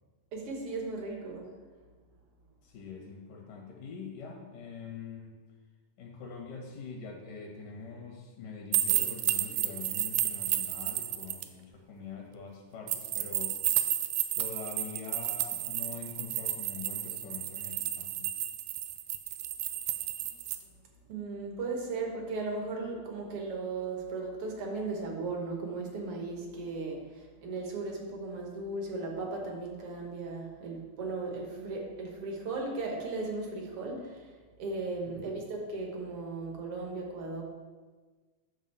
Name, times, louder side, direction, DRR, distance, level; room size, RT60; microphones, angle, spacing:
voice 1, 0.3-1.5 21.1-34.3 34.6-37.4, right 3 dB, 55° right, 0 dB, 1.8 m, -36 dB
voice 2, 2.6-5.3 6.0-13.6 14.3-18.3 35.1-35.4, left 5 dB, 75° left, 1 dB, 3.0 m, -44 dB
sound 1, 8.7-11.4 12.9-20.6, right 13 dB, 85° right, 2.1 m, -32 dB
11.0 x 3.7 x 6.7 m, 1.4 s
omnidirectional pair, 3.7 m